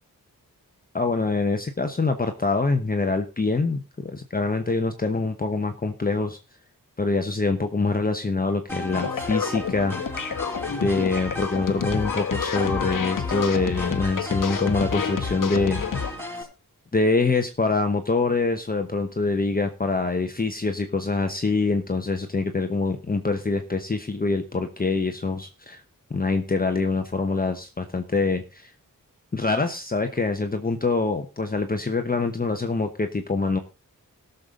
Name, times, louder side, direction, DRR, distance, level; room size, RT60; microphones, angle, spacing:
voice 1, 0.9-6.4 7.0-9.9 10.8-16.5 16.9-25.8 26.1-28.7 29.3-33.6, left 3 dB, 25° left, 6 dB, 1.0 m, -25 dB
sound 1, 8.7-16.4, left 1 dB, 5° left, 3.8 m, -35 dB
sound 2, 8.9-16.1, left 7 dB, 65° left, 1.1 m, -29 dB
18.0 x 6.8 x 3.7 m, 0.30 s
wide cardioid pair, 125°, 34 cm